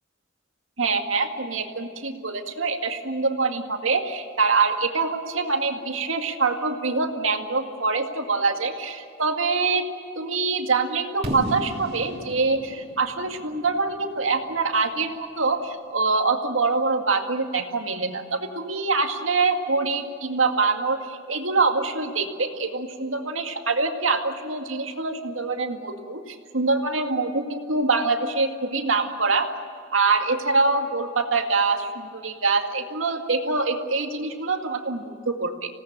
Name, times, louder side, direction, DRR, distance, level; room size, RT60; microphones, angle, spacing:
voice 1, 0.8-9.9 10.2-29.5 29.9-35.5, right 4 dB, 85° right, 4 dB, 2.1 m, -24 dB
Fireworks, 11.2-15.1, equal, 35° right, 3.4 m, -35 dB
27.0 x 18.0 x 8.9 m, 2.3 s
head